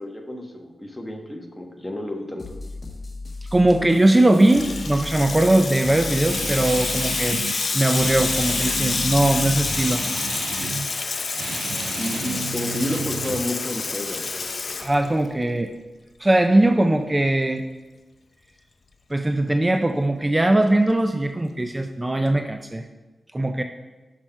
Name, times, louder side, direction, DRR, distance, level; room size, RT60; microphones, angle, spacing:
voice 1, 0.0-2.5 12.0-14.2, left 1 dB, 15° left, 2 dB, 1.1 m, -30 dB
sound 1, 2.4-10.1, left 3 dB, 40° left, 1.1 m, -37 dB
voice 2, 3.5-7.4 7.7-10.0 14.8-15.7 16.2-17.6 19.1-22.8 23.3-23.6, right 1 dB, 20° right, 6 dB, 0.4 m, -20 dB
Water tap faucet / Sink (filling or washing), 4.0-15.5, left 4 dB, 55° left, 0.6 m, -28 dB
Guitar, 6.2-7.6 7.9-10.9 11.3-13.5, right 5 dB, 85° right, 0.4 m, -33 dB
6.3 x 5.9 x 5.6 m, 1.2 s
wide cardioid pair, 85°, 0 cm